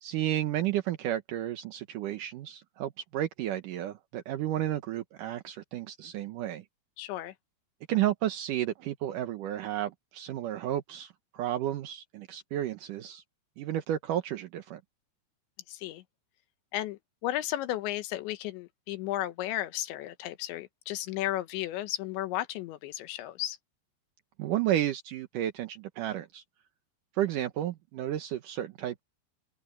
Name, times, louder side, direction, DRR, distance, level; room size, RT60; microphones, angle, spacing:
voice 1, 0.0-6.6 7.9-13.2 13.6-14.8 24.4-26.4 27.1-29.0, right 12 dB, 75° right, 1.9 m, -32 dB
voice 2, 7.0-7.3 15.7-16.0 16.7-23.6, left 14 dB, 80° left, 3.4 m, -34 dB
open air
omnidirectional pair, 5.2 m